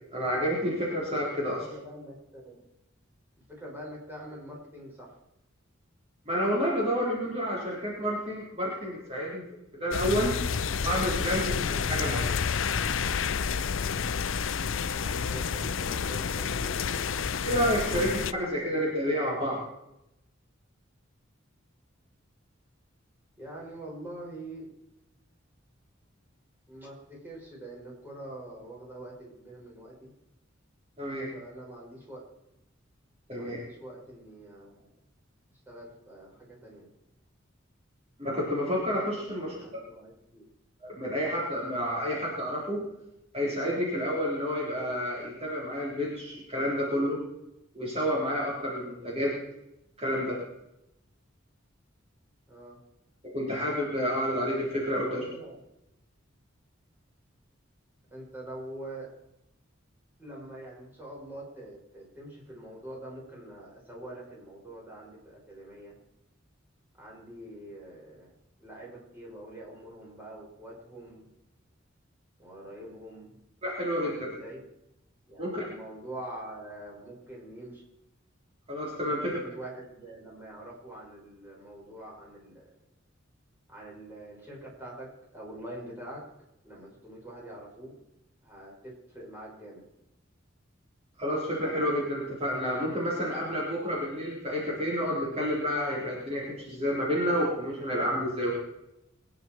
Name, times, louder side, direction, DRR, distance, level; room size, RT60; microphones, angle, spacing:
voice 1, 0.1-1.6 6.3-9.4 9.8-10.3 10.8-12.3 14.8-14.9 17.4-19.6 31.0-31.3 33.3-33.6 38.2-39.6 40.8-42.8 43.3-47.2 47.7-49.3 50.0-50.4 53.2-55.3 73.6-74.2 75.4-75.6 78.7-79.4 91.2-98.5, equal, 30° right, -5 dB, 4.1 m, -29 dB
voice 2, 1.2-2.6 3.5-5.1 14.9-17.2 23.4-24.7 26.7-30.1 31.3-32.2 33.3-34.9 35.7-36.9 39.2-40.5 52.5-52.8 55.0-55.6 58.1-59.1 60.2-65.9 67.0-68.3 68.6-71.3 72.4-73.3 74.0-74.6 75.3-77.8 79.1-82.7 83.7-86.2 86.6-88.0 88.4-89.8, right 1 dB, 10° right, -4 dB, 5.7 m, -45 dB
sound 1, 9.9-18.3, left 6 dB, 75° left, 0.6 m, -29 dB
23.0 x 10.5 x 4.5 m, 0.86 s
head